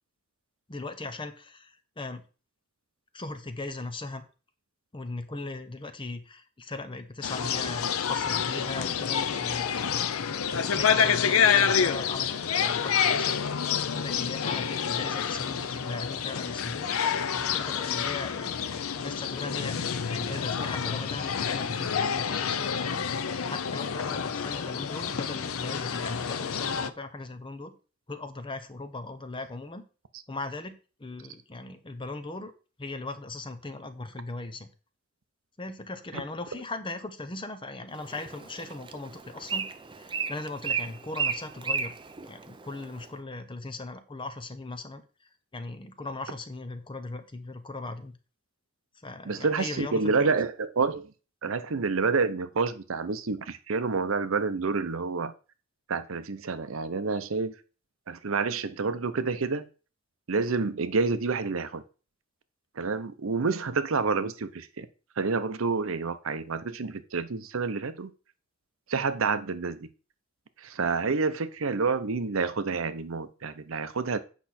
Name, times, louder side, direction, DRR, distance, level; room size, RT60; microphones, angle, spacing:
voice 1, 0.7-2.2 3.1-4.2 4.9-9.7 10.2-13.4 13.7-16.9 17.3-19.7 20.1-23.0 23.5-27.7 28.1-29.8 30.3-30.7 31.0-32.5 32.8-34.7 35.6-39.7 39.9-41.9 42.2-45.0 45.5-48.2 49.0-50.4 51.4-51.6, left 2 dB, 25° left, 0.8 m, -38 dB
sound 1, 7.2-26.9, left 7 dB, 85° left, 0.6 m, -28 dB
Bird, 37.9-43.1, right 6 dB, 25° right, 0.6 m, -34 dB
voice 2, 49.3-51.1 51.4-55.3 55.9-57.5 58.1-59.7 60.3-61.8 62.8-64.9 65.2-68.1 68.9-69.9 70.6-74.2, right 4 dB, 70° right, 0.7 m, -28 dB
8.3 x 5.6 x 4.2 m
head